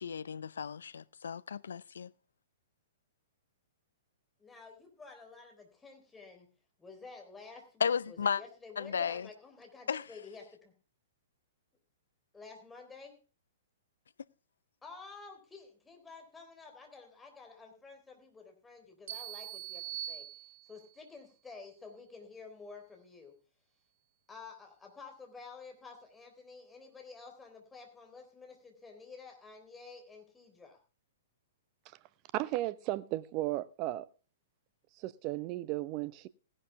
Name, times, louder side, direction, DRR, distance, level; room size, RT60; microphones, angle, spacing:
voice 1, 0.0-2.1 7.8-8.4 8.8-9.3 9.9-10.0, left 7 dB, 70° left, 0.5 m, -34 dB
voice 2, 4.4-6.5 6.8-10.7 12.3-13.1 14.8-20.3 20.7-23.3 24.3-30.8, left 4 dB, 10° left, 3.7 m, -51 dB
sound 1, 19.1-21.0, right 12 dB, 55° right, 1.8 m, -42 dB
voice 3, 32.3-34.1 35.0-36.3, right 16 dB, 35° right, 0.7 m, -35 dB
16.5 x 11.0 x 3.5 m
figure-of-eight pair, 110°, 0 cm